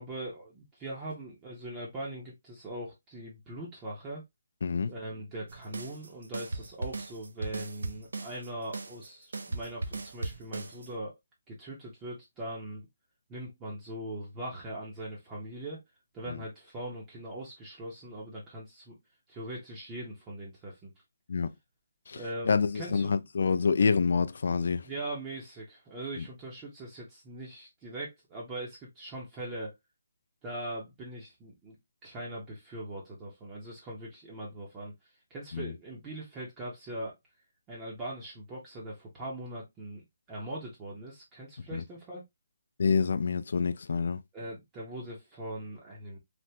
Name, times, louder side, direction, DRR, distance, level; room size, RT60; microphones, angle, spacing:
voice 1, 0.0-4.2 4.9-11.2 11.5-12.9 13.3-15.8 16.1-18.9 19.3-20.9 22.1-23.2 24.8-29.7 30.4-31.8 32.0-34.9 35.3-37.1 37.7-42.2 44.3-46.2, right 1 dB, 15° right, 0.7 m, -41 dB
voice 2, 4.6-4.9 16.3-16.4 21.3-21.5 22.1-22.2 22.5-24.9 26.2-26.3 35.5-35.7 41.7-41.8 42.8-44.2, left 5 dB, 60° left, 0.4 m, -27 dB
sound 1, 5.5-10.9, right 2 dB, 80° right, 0.5 m, -38 dB
3.3 x 2.0 x 2.8 m
hypercardioid pair, 165°, 0 cm